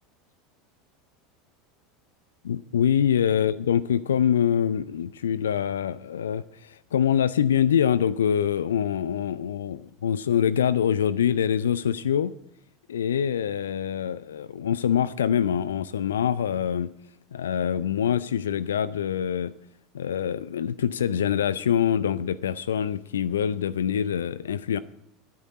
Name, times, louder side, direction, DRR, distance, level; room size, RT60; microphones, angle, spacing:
voice 1, 2.4-12.3 12.9-16.9 17.3-19.5 19.9-24.8, left 9 dB, 75° left, 0.5 m, -25 dB
13.5 x 8.7 x 9.3 m
figure-of-eight pair, 80°, 0 cm